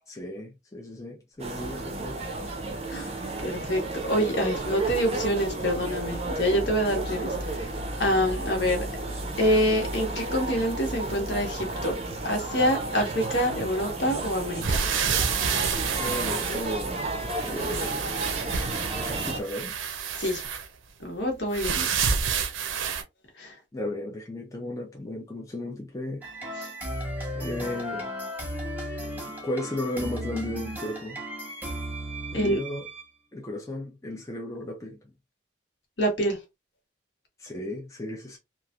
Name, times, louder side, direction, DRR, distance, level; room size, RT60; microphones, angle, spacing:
voice 1, 0.1-2.2 16.0-17.0 17.4-18.3 19.0-19.8 23.7-26.2 27.3-28.1 29.4-31.2 32.3-32.9 33.3-35.0 37.4-38.4, left 1 dB, 15° left, 0.5 m, -34 dB
sound 1, 1.4-19.4, right 2 dB, 30° right, 0.5 m, -32 dB
voice 2, 3.4-7.7 8.0-8.9 9.4-12.0 12.2-14.8 20.2-20.4 21.0-22.0 23.4-23.5 32.3-32.6 36.0-36.4, equal, 65° left, 1.1 m, -26 dB
sound 2, 14.6-17.1 17.4-20.7 21.5-23.0, right 6 dB, 85° right, 0.6 m, -29 dB
sound 3, 26.2-33.1, equal, 10° right, 1.0 m, -35 dB
3.0 x 2.4 x 2.3 m
head